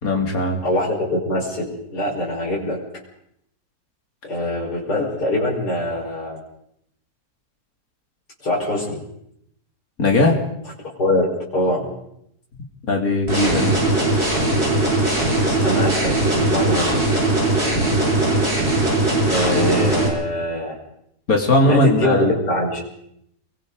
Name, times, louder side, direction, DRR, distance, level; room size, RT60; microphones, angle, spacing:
voice 1, 0.0-0.6 10.0-10.3 12.9-13.8 21.3-22.3, left 2 dB, 60° left, 1 dB, 3.5 m, -18 dB
voice 2, 0.6-2.8 4.3-6.4 8.4-9.0 11.0-11.9 15.5-17.0 19.3-20.8 21.6-22.8, left 1 dB, 80° left, -4 dB, 5.6 m, -23 dB
sound 1, 13.3-20.1, right 2 dB, 40° right, 7.7 m, -19 dB
29.5 x 22.5 x 4.0 m, 0.75 s
omnidirectional pair, 1.7 m